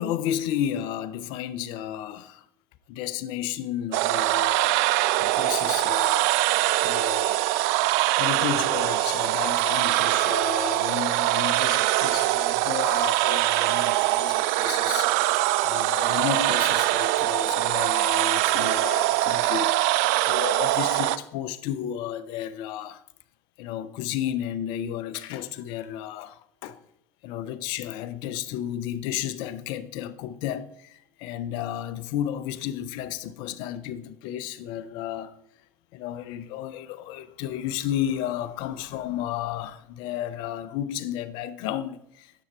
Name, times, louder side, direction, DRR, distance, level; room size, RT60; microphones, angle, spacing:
voice 1, 0.0-2.4 2.9-4.8 5.2-6.4 6.8-7.5 8.2-23.0 23.6-26.8 27.2-35.4 35.9-42.3, left 11 dB, 55° left, 0.6 m, -32 dB
sound 1, 3.9-21.2, right 17 dB, 60° right, 0.4 m, -23 dB
9.8 x 7.0 x 4.4 m
figure-of-eight pair, 75°, 10 cm